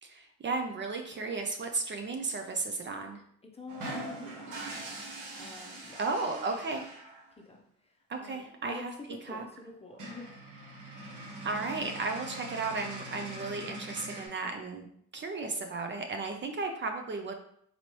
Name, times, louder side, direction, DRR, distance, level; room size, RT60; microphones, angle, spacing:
voice 1, 0.0-3.2 6.0-6.8 8.1-8.9 9.3-9.4 11.4-14.9 15.1-17.3, right 3 dB, 40° right, 4 dB, 0.5 m, -34 dB
voice 2, 3.4-4.7 5.4-6.1 6.3-6.8 7.4-10.3, left 2 dB, 20° left, 1 dB, 0.7 m, -47 dB
sound 1, 3.7-7.3 8.9-9.0 9.2-9.4 9.7-9.8 9.9-14.3, right 1 dB, 90° right, 1.0 m, -42 dB
4.0 x 3.1 x 2.9 m, 0.68 s
cardioid pair, 90°, 30 cm